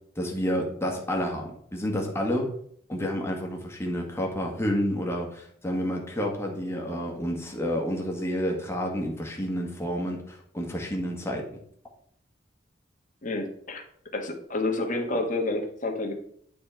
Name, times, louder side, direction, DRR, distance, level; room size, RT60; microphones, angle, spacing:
voice 1, 0.1-2.5 2.9-11.5, equal, 15° left, 0 dB, 1.5 m, -29 dB
voice 2, 13.2-13.8 14.1-16.1, left 2 dB, 45° left, 3 dB, 1.3 m, -29 dB
9.0 x 4.2 x 4.4 m, 0.64 s
head